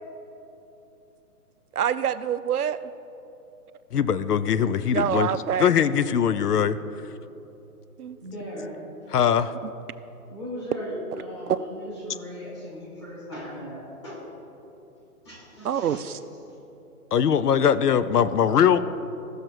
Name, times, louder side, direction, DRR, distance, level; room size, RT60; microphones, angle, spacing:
voice 1, 1.7-2.8 4.9-5.7 8.0-8.2 11.5-11.6 15.6-16.2, right 8 dB, 70° right, 12 dB, 0.6 m, -26 dB
voice 2, 3.9-5.3 5.6-6.8 9.1-9.5 17.1-18.8, left 8 dB, 75° left, 14 dB, 0.6 m, -21 dB
voice 3, 8.2-8.9 10.3-14.3 15.2-16.1, equal, 20° left, -4 dB, 1.5 m, -37 dB
16.0 x 6.5 x 4.5 m, 3.0 s
hypercardioid pair, 175°, 47 cm